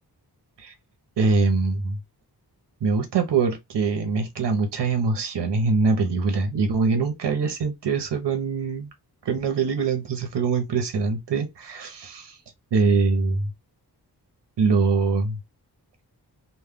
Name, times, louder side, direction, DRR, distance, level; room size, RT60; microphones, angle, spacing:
voice 1, 1.2-2.0 2.8-8.9 9.2-12.4 12.7-13.5 14.6-15.4, right 4 dB, 90° right, 0.7 m, -23 dB
2.2 x 2.1 x 3.4 m
cardioid pair, 65°, 41 cm